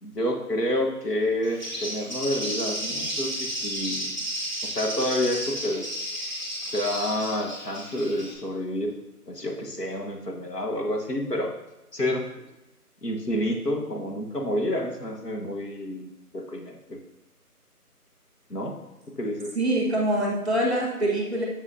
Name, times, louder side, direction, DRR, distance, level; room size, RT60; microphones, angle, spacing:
voice 1, 0.0-4.2 4.6-5.9 6.7-8.9 9.3-11.5 11.9-12.3 13.0-17.0 18.5-18.8 19.1-19.5, left 1 dB, 80° left, 1 dB, 1.5 m, -29 dB
Bird, 1.4-8.3, equal, 30° left, 1.7 m, -32 dB
voice 2, 19.5-21.5, right 1 dB, ahead, -1 dB, 0.8 m, -24 dB
8.3 x 7.1 x 2.8 m, 0.98 s
figure-of-eight pair, 180°, 47 cm